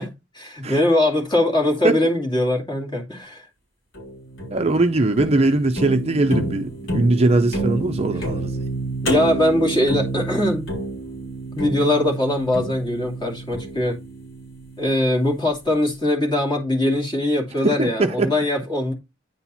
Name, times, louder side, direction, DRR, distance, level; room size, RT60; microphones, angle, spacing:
voice 1, 0.0-3.5 9.0-10.6 11.5-14.0 14.8-18.9, left 1 dB, 25° left, 2.5 m, -21 dB
sound 1, 3.9-15.1, right 2 dB, 80° left, 4.0 m, -29 dB
voice 2, 4.5-8.5 17.6-18.3, right 2 dB, 30° right, 0.6 m, -20 dB
9.6 x 4.3 x 4.2 m
head